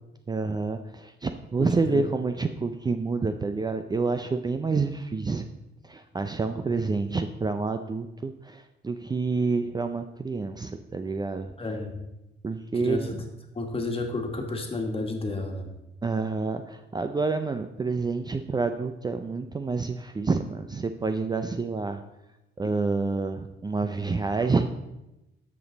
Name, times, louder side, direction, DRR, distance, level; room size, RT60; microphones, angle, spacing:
voice 1, 0.3-5.5 5.8-11.5 12.4-13.2 16.0-22.0 22.6-24.7, right 4 dB, 20° right, 8 dB, 0.5 m, -28 dB
voice 2, 1.6-2.1 11.6-12.0 12.7-13.1 13.6-15.7 22.6-22.7 24.4-24.5, left 2 dB, 30° left, 3 dB, 1.8 m, -31 dB
13.0 x 5.3 x 4.0 m, 0.95 s
cardioid pair, 90°, 20 cm